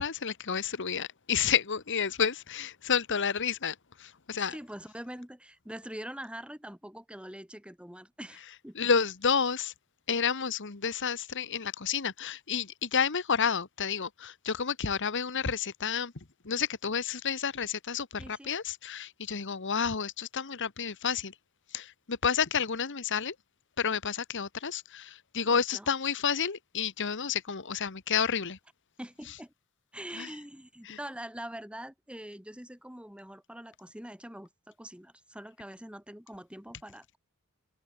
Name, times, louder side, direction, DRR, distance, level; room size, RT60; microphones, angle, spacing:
voice 1, 0.0-3.7 4.0-4.5 8.7-9.7 10.1-16.1 16.4-21.3 21.7-23.3 23.8-28.6 30.2-30.3 30.9-31.0, left 6 dB, 55° left, 1.3 m, -30 dB
voice 2, 4.3-8.9 18.2-18.6 25.4-25.9 29.0-29.5 29.9-37.2, right 1 dB, 5° right, 4.7 m, -44 dB
head